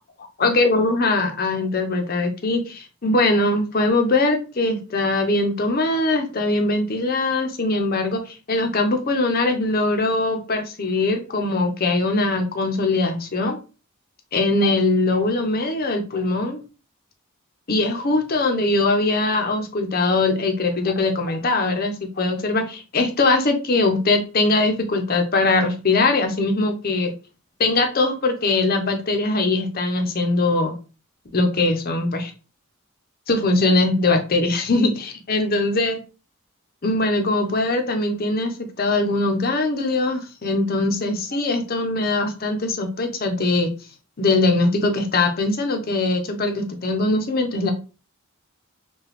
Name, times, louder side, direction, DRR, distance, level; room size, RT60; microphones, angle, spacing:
voice 1, 0.4-13.6 14.3-16.6 17.7-27.1 27.6-30.8 31.3-32.3 33.3-36.0 36.8-43.7 44.2-47.7, left 2 dB, 45° left, 5 dB, 0.7 m, -21 dB
4.8 x 2.3 x 3.0 m, 0.34 s
head